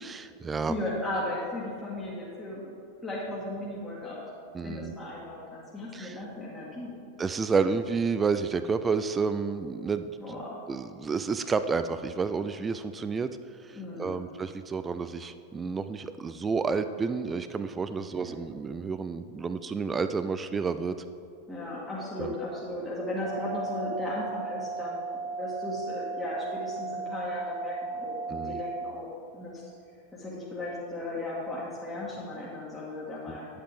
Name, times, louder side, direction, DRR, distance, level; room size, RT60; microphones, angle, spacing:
voice 1, 0.0-0.8 4.5-4.9 5.9-6.2 7.2-10.4 10.7-13.3 13.6-21.0 22.2-22.3 28.3-28.6 33.3-33.4, right 5 dB, 15° right, 11 dB, 0.3 m, -30 dB
voice 2, 0.7-2.7 3.0-4.2 4.6-6.9 10.2-10.6 13.7-14.2 18.0-18.4 21.5-29.6 30.1-33.5, left 1 dB, 10° left, -8 dB, 1.6 m, -36 dB
sound 1, 23.2-28.9, right 4 dB, 35° right, 1.4 m, -35 dB
9.9 x 7.5 x 3.5 m, 2.4 s
figure-of-eight pair, 90°, 0 cm